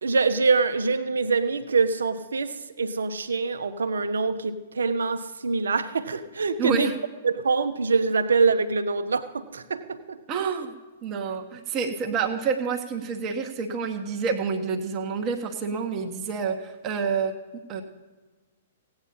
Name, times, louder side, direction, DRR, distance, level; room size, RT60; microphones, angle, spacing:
voice 1, 0.0-6.9 7.2-10.7, right 4 dB, 70° right, 10 dB, 0.9 m, -25 dB
voice 2, 6.6-6.9 10.3-10.7 11.0-17.8, right 5 dB, 30° right, 3 dB, 1.2 m, -28 dB
16.5 x 8.9 x 5.6 m, 1.3 s
figure-of-eight pair, 110°, 0 cm